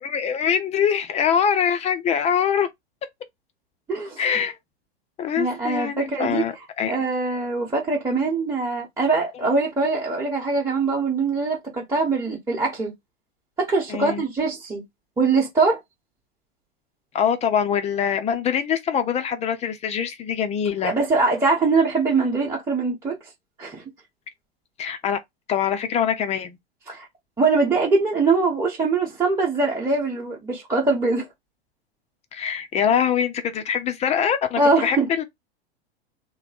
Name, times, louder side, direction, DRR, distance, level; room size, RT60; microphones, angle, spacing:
voice 1, 0.0-2.7 4.2-4.6 5.2-6.9 13.9-14.2 17.1-21.0 24.8-25.2 25.5-26.6 32.3-35.2, left 8 dB, 20° left, 0.5 m, -23 dB
voice 2, 3.9-4.2 5.4-6.4 6.9-12.9 13.6-14.8 15.2-15.8 20.8-23.2 23.6-23.8 26.9-27.1 27.4-31.3 34.6-35.1, right 3 dB, 10° right, 1.1 m, -22 dB
3.1 x 2.2 x 4.1 m
figure-of-eight pair, 95°, 32 cm